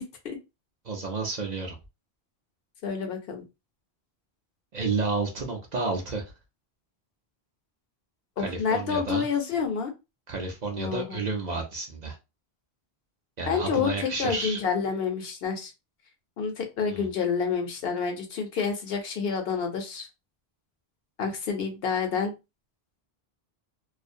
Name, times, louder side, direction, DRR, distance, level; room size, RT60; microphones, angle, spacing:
voice 1, 0.8-1.7 4.7-6.2 8.4-9.3 10.3-12.2 13.4-14.6 16.9-17.1, right 4 dB, 50° right, 1 dB, 0.6 m, -31 dB
voice 2, 2.8-3.4 8.4-9.9 10.8-11.2 13.5-15.7 16.4-20.1 21.2-22.3, left 6 dB, 70° left, 4 dB, 0.8 m, -28 dB
2.4 x 2.0 x 2.6 m, 0.25 s
omnidirectional pair, 1.1 m